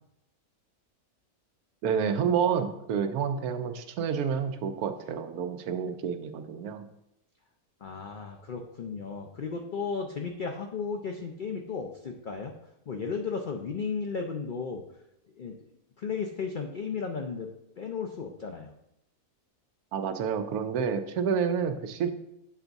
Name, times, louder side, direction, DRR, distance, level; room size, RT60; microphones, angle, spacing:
voice 1, 1.8-6.8 19.9-22.1, right 7 dB, 90° right, 8 dB, 1.1 m, -29 dB
voice 2, 7.8-12.5 12.9-14.8 15.4-15.6 16.0-18.7, left 5 dB, 75° left, 3 dB, 0.4 m, -34 dB
8.1 x 3.5 x 3.9 m, 0.82 s
omnidirectional pair, 1.5 m